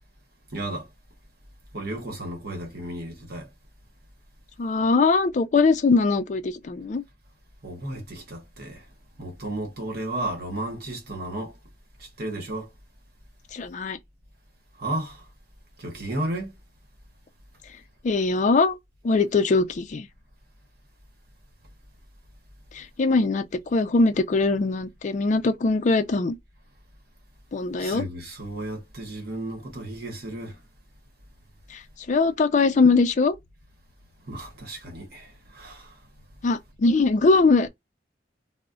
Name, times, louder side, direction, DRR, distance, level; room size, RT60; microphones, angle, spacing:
voice 1, 0.5-0.9 1.7-3.5 7.6-8.9 9.2-11.6 12.0-12.7 14.8-15.2 15.8-16.5 27.8-30.6 34.2-36.0, right 1 dB, 60° right, 1.0 m, -33 dB
voice 2, 4.6-7.0 13.5-14.0 18.0-18.8 19.0-20.1 22.7-26.4 27.5-28.0 31.7-31.8 32.1-33.4 36.4-37.7, left 3 dB, 45° left, 0.4 m, -21 dB
2.3 x 2.0 x 3.6 m
head